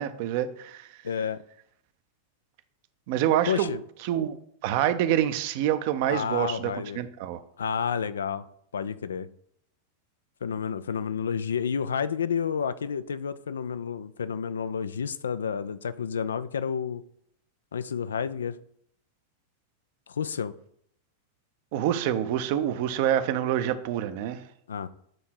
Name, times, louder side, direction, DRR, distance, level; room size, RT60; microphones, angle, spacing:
voice 1, 0.0-0.9 3.1-3.7 4.0-4.4 4.6-7.4 21.7-24.4, right 11 dB, 50° right, 11 dB, 0.6 m, -26 dB
voice 2, 1.0-1.4 3.5-3.8 6.1-7.0 7.6-8.4 8.7-9.3 10.4-17.0 17.7-18.6 20.1-20.5 24.7-24.9, left 7 dB, 70° left, 14 dB, 0.3 m, -30 dB
7.8 x 3.7 x 4.4 m, 0.69 s
figure-of-eight pair, 90°, 0 cm